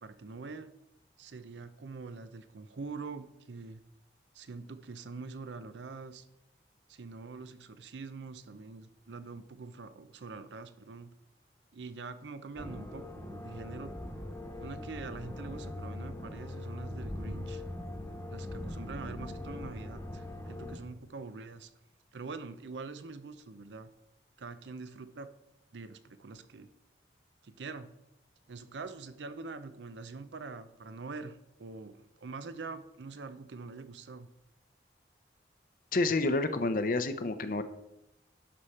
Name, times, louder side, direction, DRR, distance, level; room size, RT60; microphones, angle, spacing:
voice 1, 0.0-0.7 1.2-3.8 4.3-6.2 6.9-11.1 11.7-13.9 14.6-17.6 18.3-21.7 22.1-23.9 24.4-25.3 25.7-26.7 27.4-27.9 28.5-34.3, right 4 dB, 80° right, 12 dB, 0.6 m, -44 dB
sound 1, 12.6-20.8, left 1 dB, 15° left, 1.0 m, -41 dB
voice 2, 35.9-37.6, left 2 dB, 50° left, 10 dB, 0.6 m, -29 dB
11.5 x 4.9 x 4.3 m, 0.89 s
head